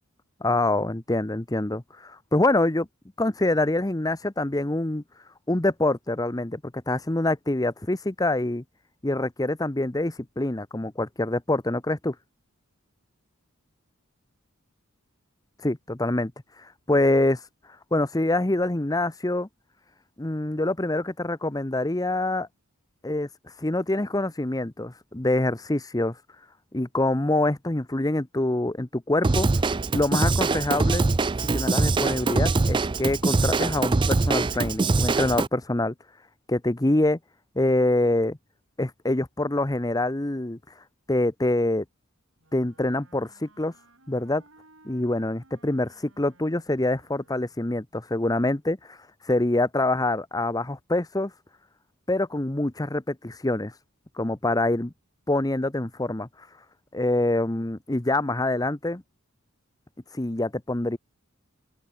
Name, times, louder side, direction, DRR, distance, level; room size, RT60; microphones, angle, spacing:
voice 1, 0.4-2.9 3.2-5.0 5.5-8.6 9.0-12.1 15.6-16.3 16.6-17.4 17.9-19.5 20.2-22.5 23.0-23.3 23.6-26.2 26.7-29.5 29.9-31.1 31.5-35.9 36.5-37.2 37.6-38.4 38.8-40.6 41.1-41.8 42.5-43.7 44.1-44.4 44.8-49.0 49.2-51.3 52.1-53.7 54.2-54.9 55.3-56.3 56.9-59.0 60.1-61.0, left 2 dB, 15° left, 0.9 m, -25 dB
Drum kit / Drum, 29.2-35.5, right 3 dB, 25° right, 0.4 m, -23 dB
Wind instrument woodwind instrument, 42.4-47.8, right 2 dB, 70° right, 7.3 m, -58 dB
open air
head